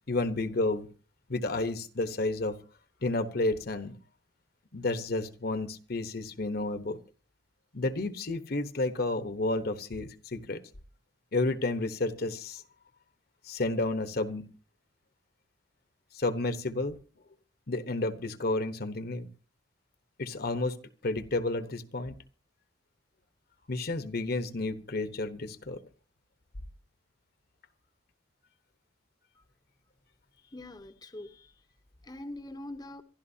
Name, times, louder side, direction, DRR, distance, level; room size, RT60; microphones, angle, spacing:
voice 1, 0.1-0.9 1.3-2.6 3.0-3.9 4.7-7.0 7.7-10.6 11.3-12.6 13.4-14.5 16.1-17.0 17.7-19.3 20.2-20.8 21.0-22.1 23.7-25.8, left 2 dB, 55° left, 1.1 m, -31 dB
voice 2, 30.5-31.5 32.0-33.0, left 1 dB, 20° left, 0.9 m, -43 dB
26.5 x 12.0 x 2.8 m
head